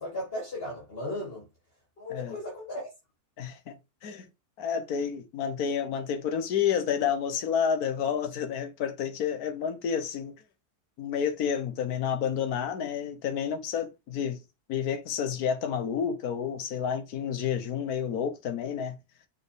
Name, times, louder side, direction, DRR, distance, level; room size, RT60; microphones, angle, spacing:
voice 1, 0.0-1.4 2.0-2.8, left 1 dB, 35° left, 2.9 m, -36 dB
voice 2, 3.4-4.3 4.6-10.3 11.0-14.4 14.7-19.0, left 7 dB, 70° left, 1.5 m, -30 dB
6.8 x 4.1 x 5.0 m
omnidirectional pair, 1.7 m